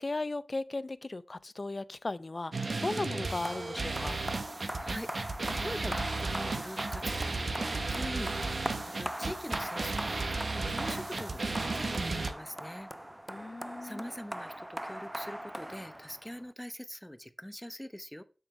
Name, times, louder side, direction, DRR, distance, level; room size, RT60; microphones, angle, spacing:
voice 1, 0.0-4.2 13.3-14.0, left 2 dB, 50° left, 0.5 m, -36 dB
sound 1, 2.5-12.3, right 3 dB, 65° right, 1.0 m, -34 dB
sound 2, 3.4-16.5, right 1 dB, 10° right, 0.3 m, -40 dB
voice 2, 4.8-12.9 13.8-18.2, equal, 5° left, 0.8 m, -43 dB
7.1 x 6.9 x 3.2 m
wide cardioid pair, 55°, 0 cm